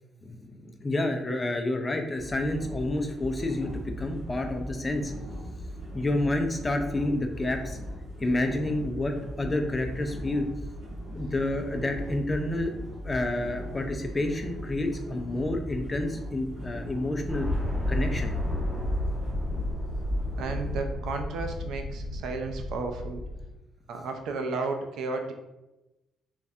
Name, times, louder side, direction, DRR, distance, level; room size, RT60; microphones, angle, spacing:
voice 1, 0.2-3.7 4.0-5.1 5.9-7.8 8.2-10.5 11.1-12.7 13.0-17.5 17.9-18.3, left 1 dB, 25° left, 4 dB, 0.5 m, -29 dB
sound 1, 2.2-20.8, equal, 55° right, 1.3 m, -38 dB
sound 2, 17.3-23.5, left 1 dB, ahead, 1.3 m, -32 dB
voice 2, 20.4-23.2 23.9-25.3, right 3 dB, 80° right, 5 dB, 0.4 m, -33 dB
3.1 x 2.4 x 2.7 m, 0.97 s
cardioid pair, 90°, 0 cm